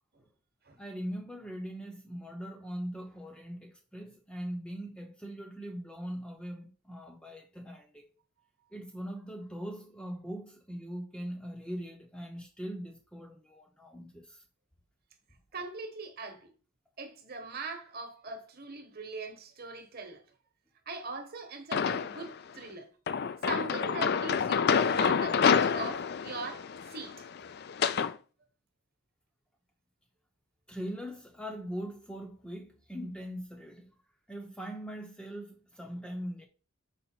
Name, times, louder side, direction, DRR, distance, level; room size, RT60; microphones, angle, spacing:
voice 1, 0.8-8.0 8.7-14.4 30.7-33.9 34.3-36.5, equal, 5° left, 0.7 m, -41 dB
voice 2, 15.5-16.5 17.0-20.2 20.9-22.9 23.4-27.2, right 3 dB, 45° right, 1.2 m, -41 dB
sound 1, 21.7-22.3 23.1-28.1, left 6 dB, 50° left, 0.4 m, -28 dB
5.6 x 4.9 x 4.4 m
head